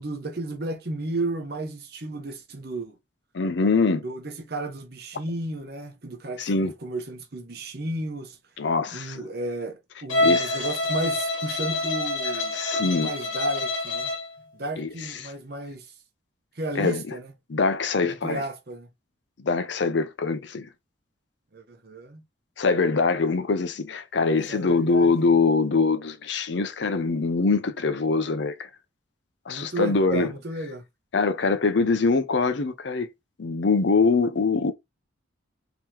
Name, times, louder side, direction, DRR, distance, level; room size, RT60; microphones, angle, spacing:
voice 1, 0.0-3.0 4.0-8.4 8.9-12.6 12.8-14.1 14.5-15.9 16.6-17.3 18.2-18.9 21.5-22.2 24.5-25.1 29.5-30.8, right 2 dB, 50° right, 0.9 m, -33 dB
voice 2, 3.3-4.0 6.4-6.7 8.6-9.2 10.2-10.6 12.5-13.1 14.8-15.3 16.7-17.1 17.5-18.4 19.4-20.7 22.6-28.6 29.5-30.3 31.1-33.1 33.4-34.7, left 4 dB, 60° left, 0.6 m, -23 dB
Bowed string instrument, 10.1-14.3, left 2 dB, 80° left, 1.2 m, -26 dB
3.7 x 2.9 x 2.9 m
head